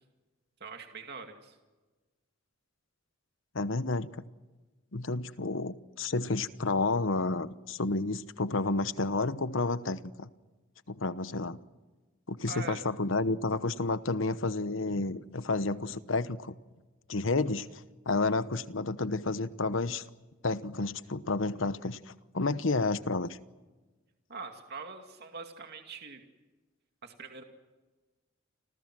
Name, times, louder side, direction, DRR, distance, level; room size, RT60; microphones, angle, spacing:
voice 1, 0.6-1.6 12.5-12.8 14.9-15.0 24.3-26.2 27.0-27.4, right 4 dB, 55° right, 2.4 m, -43 dB
voice 2, 3.5-4.2 4.9-10.3 10.9-11.6 12.3-16.5 17.1-20.0 20.4-22.0 22.3-23.3, left 3 dB, 70° left, 1.1 m, -30 dB
30.0 x 26.5 x 6.2 m
head